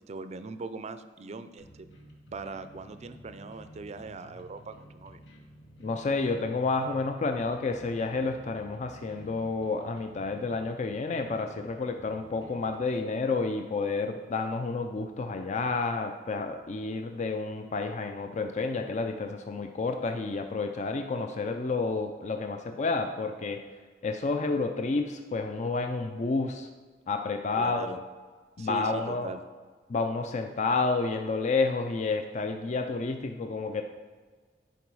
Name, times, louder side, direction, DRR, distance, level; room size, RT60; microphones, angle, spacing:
voice 1, 0.0-1.9 2.3-5.2 27.6-28.0 28.6-29.4, right 3 dB, 35° right, 11 dB, 0.4 m, -40 dB
sound 1, 1.6-12.7, equal, 80° left, 1.5 m, -52 dB
voice 2, 5.8-23.6 24.0-26.7 27.1-28.0 28.6-29.3 29.9-33.8, left 3 dB, 40° left, 5 dB, 0.4 m, -30 dB
11.0 x 4.7 x 4.7 m, 1.5 s
head